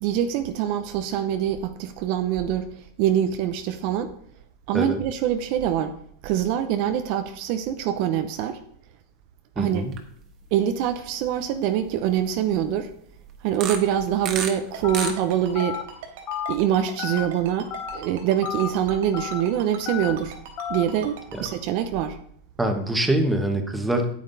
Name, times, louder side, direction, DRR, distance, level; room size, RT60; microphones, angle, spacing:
voice 1, 0.0-2.7 3.0-4.1 4.7-5.9 6.2-8.6 9.6-9.8 10.5-12.9 13.4-15.8 16.5-20.4 20.7-22.2, right 10 dB, 50° right, 8 dB, 0.8 m, -24 dB
voice 2, 9.6-9.9 21.3-21.4 22.6-24.1, right 1 dB, 5° right, 5 dB, 1.3 m, -24 dB
sound 1, 9.8-10.0 10.4-10.6 11.3-11.4 13.5-14.5 14.8-15.5, right 7 dB, 35° right, 1.4 m, -30 dB
Ringtone, 14.7-21.5, right 8 dB, 70° right, 3.0 m, -40 dB
Telephone, 14.8-15.1 15.5-15.8 16.3-16.5 17.0-17.3 17.7-18.0 18.4-18.7 19.1-19.4 19.9-20.1 20.6-20.8, left 9 dB, 35° left, 1.0 m, -31 dB
9.2 x 8.7 x 4.1 m, 0.66 s
supercardioid pair, 150°, 0 cm